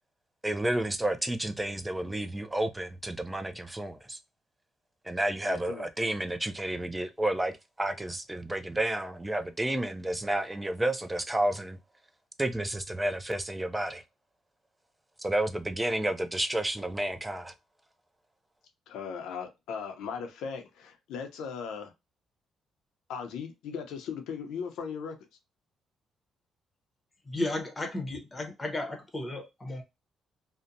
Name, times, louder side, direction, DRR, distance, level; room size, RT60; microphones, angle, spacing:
voice 1, 0.4-4.2 5.0-11.8 12.4-14.0 15.2-17.5, right 1 dB, 10° right, 0.4 m, -31 dB
voice 2, 5.4-5.8 18.9-21.9 23.1-25.2, left 6 dB, 85° left, 0.6 m, -38 dB
voice 3, 27.2-29.8, left 2 dB, 20° left, 0.9 m, -34 dB
2.7 x 2.1 x 2.5 m
cardioid pair, 90°, 0 cm